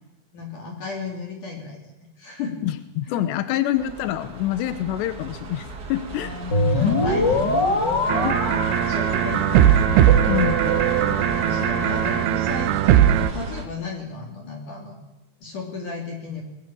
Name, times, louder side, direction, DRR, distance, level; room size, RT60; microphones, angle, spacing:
voice 1, 0.3-1.9 2.2-2.5 3.1-3.2 6.1-8.3 8.6-10.4 11.0-15.0 15.4-16.4, left 4 dB, 50° left, 1 dB, 4.3 m, -34 dB
voice 2, 2.6-6.3 8.2-8.4 10.3-10.9, left 12 dB, 85° left, 10 dB, 3.2 m, -26 dB
sound 1, 3.8-13.7, right 2 dB, 35° right, 1.7 m, -36 dB
sound 2, 6.5-12.2, left 2 dB, 30° left, 2.7 m, -25 dB
sound 3, 8.1-13.3, right 11 dB, 75° right, 2.8 m, -19 dB
21.5 x 18.5 x 8.8 m, 1.0 s
omnidirectional pair, 4.8 m